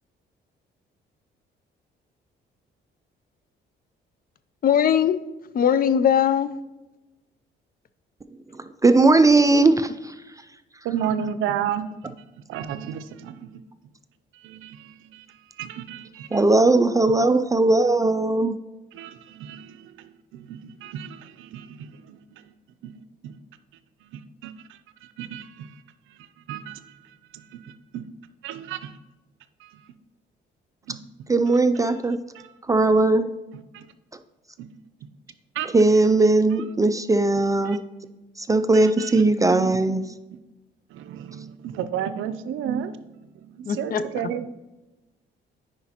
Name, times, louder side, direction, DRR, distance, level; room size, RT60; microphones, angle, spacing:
voice 1, 4.6-5.2 5.5-6.5 9.5-9.7 43.7-44.3, left 8 dB, 45° left, 14 dB, 0.4 m, -20 dB
voice 2, 8.8-9.9 16.3-18.6 31.3-32.2 32.7-33.3 35.7-37.8 38.4-40.0, right 2 dB, 15° right, 11 dB, 0.3 m, -18 dB
voice 3, 10.8-12.2 12.5-13.5 14.3-16.4 18.9-22.5 22.8-23.4 24.0-25.8 26.5-28.0 28.4-29.0 30.9-31.6 32.3-32.5 33.5-33.9 34.6-34.7 35.5-35.7 37.6-37.8 38.7-39.2 39.5-40.0 40.9-43.0 43.4-44.5, right 9 dB, 80° right, 12 dB, 0.5 m, -33 dB
9.4 x 5.1 x 2.9 m, 1.1 s
cardioid pair, 90°, 20 cm